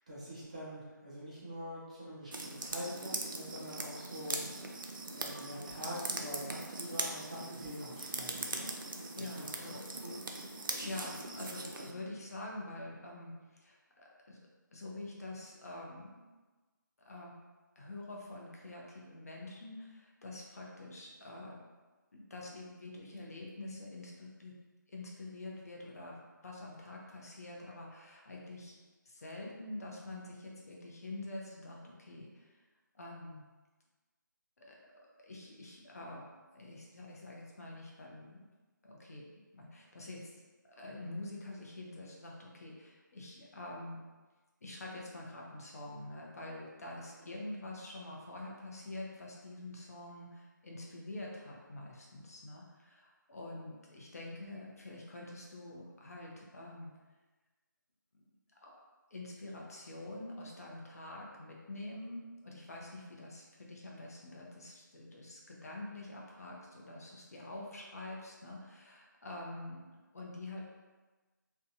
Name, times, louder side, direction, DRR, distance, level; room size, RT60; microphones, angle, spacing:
voice 1, 0.1-4.5 5.1-8.7 9.2-9.5 9.8-10.1, equal, 20° right, -7 dB, 0.4 m, -44 dB
sound 1, 2.3-11.9, right 2 dB, 85° right, 0.4 m, -41 dB
voice 2, 9.2-9.8 10.7-13.3 13.6-14.4 14.7-16.2 17.1-17.3 17.8-21.6 22.1-24.5 24.9-28.8 29.0-32.6 32.9-33.4 34.6-34.8 35.2-36.2 36.5-38.4 38.8-39.3 39.5-40.3 40.7-44.0 44.6-56.9 58.6-58.7 59.1-69.8 70.1-70.6, left 2 dB, 50° left, -2 dB, 0.6 m, -46 dB
2.7 x 2.1 x 2.6 m, 1.3 s
figure-of-eight pair, 170°, 11 cm